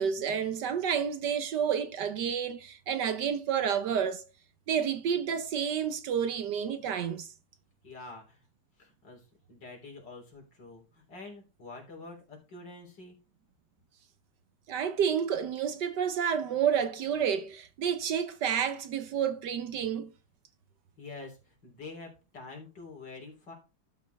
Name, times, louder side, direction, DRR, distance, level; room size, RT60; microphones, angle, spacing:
voice 1, 0.0-4.2 4.7-7.3 14.7-20.1, right 8 dB, 65° right, 1.3 m, -30 dB
voice 2, 7.8-8.4 8.8-13.2 21.0-23.5, left 3 dB, 60° left, 4.1 m, -47 dB
12.0 x 6.2 x 3.4 m
omnidirectional pair, 2.1 m